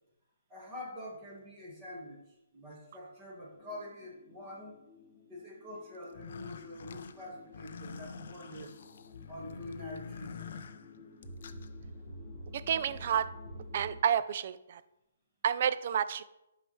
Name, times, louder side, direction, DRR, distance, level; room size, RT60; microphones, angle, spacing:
voice 1, 0.5-2.2 2.5-4.8 5.3-8.7 9.3-10.7, left 1 dB, 15° right, -4 dB, 1.5 m, -45 dB
sound 1, 3.5-14.0, left 1 dB, 20° left, 2.6 m, -50 dB
sound 2, 6.0-11.7, left 6 dB, 45° left, 0.4 m, -47 dB
voice 2, 12.5-13.3 13.7-14.8 15.4-16.2, right 8 dB, 35° right, 14 dB, 0.3 m, -30 dB
11.0 x 5.6 x 3.1 m, 0.92 s
hypercardioid pair, 180°, 0 cm